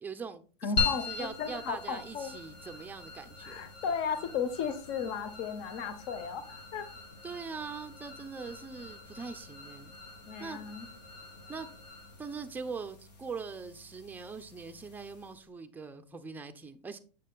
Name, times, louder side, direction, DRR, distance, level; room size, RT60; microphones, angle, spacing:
voice 1, 0.0-3.7 7.2-9.9 10.4-10.6 11.5-11.7 12.2-17.0, right 5 dB, 10° right, 0.5 m, -42 dB
voice 2, 0.6-2.3 3.4-6.9 10.3-10.9, left 6 dB, 45° left, 0.9 m, -35 dB
sound 1, 0.8-15.4, left 4 dB, 80° left, 1.9 m, -41 dB
7.4 x 6.3 x 2.3 m
supercardioid pair, 130°, 21 cm